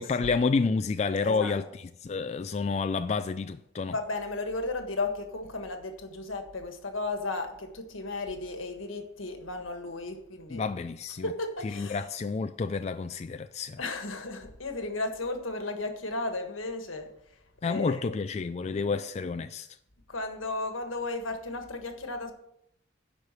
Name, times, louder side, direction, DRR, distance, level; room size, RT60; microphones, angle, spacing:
voice 1, 0.0-4.0 10.5-11.3 11.6-13.8 17.6-19.7, left 4 dB, 35° left, 0.3 m, -29 dB
voice 2, 1.2-1.6 3.9-10.6 11.2-12.1 13.8-17.1 17.6-18.1 20.1-22.3, left 2 dB, 85° left, 1.5 m, -34 dB
11.0 x 5.0 x 6.6 m
head